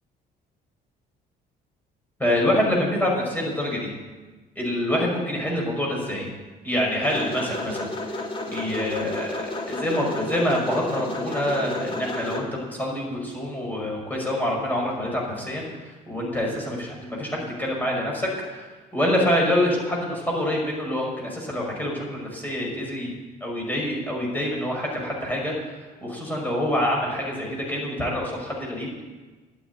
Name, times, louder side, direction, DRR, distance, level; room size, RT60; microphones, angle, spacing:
voice 1, 2.2-3.9 4.6-6.3 6.6-18.7 18.9-23.1 23.4-28.9, left 1 dB, 10° left, -2 dB, 5.7 m, -26 dB
sound 1, 7.0-12.4, left 2 dB, 30° left, 2.3 m, -32 dB
12.0 x 9.2 x 9.2 m, 1.3 s
cardioid pair, 110°, 17 cm